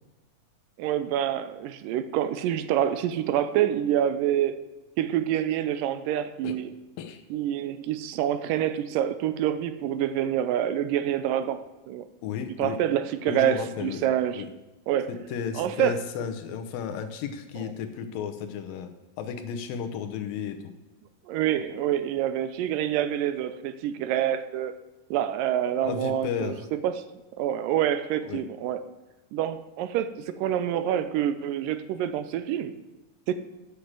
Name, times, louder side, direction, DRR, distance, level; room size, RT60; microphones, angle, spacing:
voice 1, 0.8-4.5 5.0-6.7 7.3-12.1 12.6-14.4 14.9-15.1 15.6-16.0 17.6-17.7 21.3-24.7 25.1-26.6 26.8-27.0 27.4-28.8 29.3-32.7 33.3-33.4, right 11 dB, 80° right, 11 dB, 2.2 m, -27 dB
voice 2, 12.2-12.8 13.3-14.0 14.3-14.5 15.1-18.9 19.2-20.7 25.8-26.7 28.3-28.4, left 7 dB, 85° left, 7 dB, 2.6 m, -33 dB
8.4 x 6.5 x 7.4 m, 1.0 s
omnidirectional pair, 4.0 m